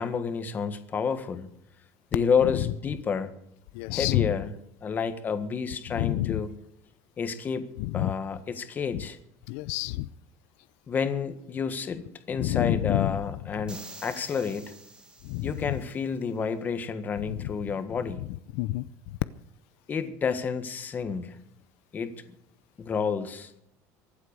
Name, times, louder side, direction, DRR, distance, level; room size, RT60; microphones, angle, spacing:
voice 1, 0.0-1.5 2.1-3.3 3.9-4.5 4.8-6.5 7.2-7.7 7.9-9.2 10.9-14.7 15.4-18.2 19.9-21.3 21.9-22.1 22.8-23.5, left 6 dB, 25° left, 10 dB, 1.6 m, -30 dB
voice 2, 2.2-2.7 3.7-4.4 5.9-6.4 7.8-8.1 8.9-9.0 9.5-10.1 12.3-13.2 13.5-13.6 15.2-15.6 17.3-17.5 18.5-19.2, left 17 dB, 80° left, 15 dB, 0.6 m, -29 dB
sound 1, 13.7-16.0, right 3 dB, 10° right, 1.8 m, -47 dB
24.0 x 8.1 x 6.7 m, 0.72 s
cardioid pair, 155°, 7 cm